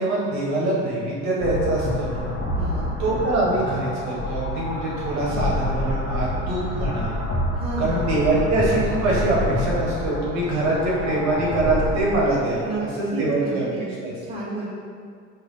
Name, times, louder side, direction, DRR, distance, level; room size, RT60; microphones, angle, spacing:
voice 1, 0.0-2.3 3.0-7.2 7.8-13.7 14.0-14.1, right 2 dB, 45° right, -5 dB, 0.9 m, -24 dB
sound 1, 1.4-12.0, left 1 dB, 30° left, 0.9 m, -28 dB
voice 2, 2.5-2.9 7.5-8.1 12.6-12.8 13.1-13.9 14.2-14.7, right 2 dB, 15° right, -6 dB, 0.9 m, -32 dB
3.2 x 2.2 x 3.9 m, 2.2 s
figure-of-eight pair, 65°, 38 cm